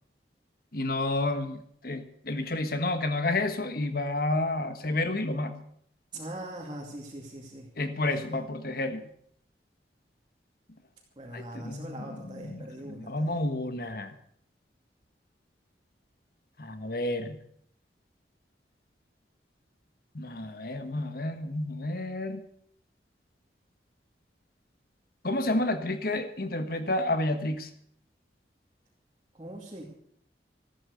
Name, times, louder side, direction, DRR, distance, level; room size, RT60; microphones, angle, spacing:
voice 1, 0.7-5.6 7.8-9.1 11.3-14.1 16.6-17.4 20.1-22.4 25.2-27.7, left 2 dB, 55° left, 9 dB, 1.4 m, -30 dB
voice 2, 6.1-7.7 8.0-8.4 11.2-13.4 29.3-29.8, right 1 dB, 25° right, -3 dB, 2.6 m, -42 dB
14.5 x 13.5 x 6.7 m, 0.67 s
head